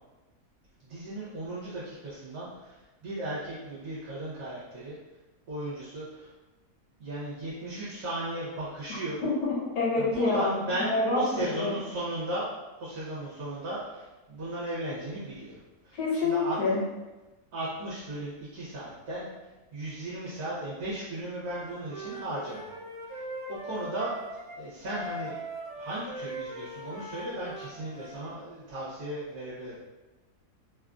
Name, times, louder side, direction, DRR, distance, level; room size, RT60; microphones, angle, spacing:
voice 1, 0.8-4.9 5.5-6.3 7.0-9.2 10.0-12.5 12.8-16.6 17.5-19.3 19.7-22.7 23.1-25.3 25.7-29.8, right 1 dB, 70° right, -9 dB, 1.3 m, -36 dB
voice 2, 9.2-11.7 15.9-16.8, left 3 dB, 85° left, -5 dB, 1.4 m, -27 dB
Wind instrument woodwind instrument, 21.4-28.2, right 1 dB, 45° right, 0.7 m, -41 dB
3.3 x 2.4 x 2.4 m, 1.1 s
omnidirectional pair, 1.7 m